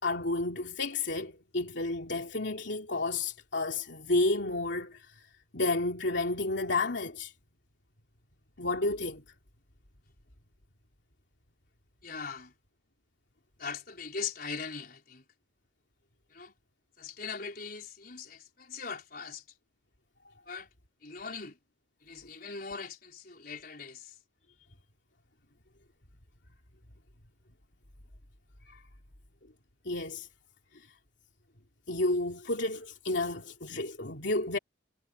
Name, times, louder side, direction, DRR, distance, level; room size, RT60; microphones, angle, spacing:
voice 1, 0.0-5.3 5.5-7.3 8.6-9.2 28.7-28.8 29.8-30.3 30.7-30.9 31.9-34.6, left 2 dB, 65° left, 3.0 m, -31 dB
voice 2, 12.0-12.5 13.6-15.2 16.3-16.5 17.0-19.4 20.5-20.7 21.0-21.6 22.0-24.1, left 5 dB, 50° left, 4.6 m, -40 dB
head